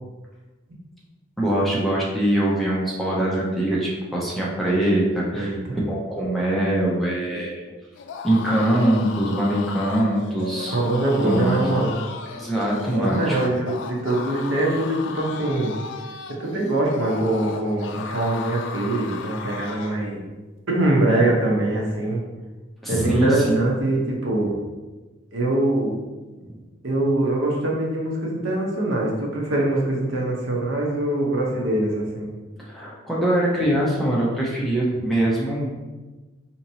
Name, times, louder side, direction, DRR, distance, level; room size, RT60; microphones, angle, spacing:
voice 1, 1.4-7.6 8.2-10.8 11.2-11.6 12.3-13.4 22.8-23.6 26.4-26.6 32.6-35.7, right 1 dB, ahead, -6 dB, 0.6 m, -23 dB
voice 2, 5.3-5.8 7.3-7.4 10.7-12.0 12.9-15.7 16.3-20.2 20.7-22.2 22.9-24.5 25.3-25.9 26.8-32.3, right 1 dB, 80° right, -2 dB, 0.9 m, -23 dB
sound 1, 8.0-20.1, left 5 dB, 70° left, 0.3 m, -35 dB
4.4 x 2.8 x 2.7 m, 1.2 s
head